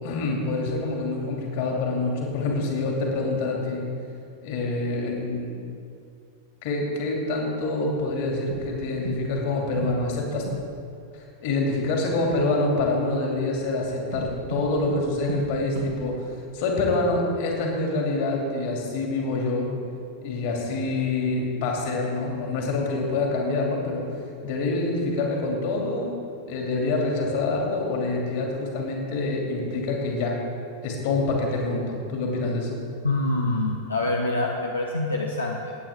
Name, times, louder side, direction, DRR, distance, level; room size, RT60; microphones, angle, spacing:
voice 1, 0.0-3.8 4.4-5.5 6.6-10.5 11.1-16.3 16.5-19.7 20.2-24.0 24.4-26.1 26.5-30.4 30.8-32.8, left 2 dB, 50° left, -1 dB, 2.7 m, -26 dB
sound 1, 8.5-9.5 9.8-10.8 14.1-16.4, right 4 dB, 70° right, 1.8 m, -35 dB
voice 2, 33.0-35.7, left 2 dB, 80° left, -1 dB, 0.9 m, -25 dB
18.5 x 8.9 x 3.7 m, 2.4 s
figure-of-eight pair, 90°, 0 cm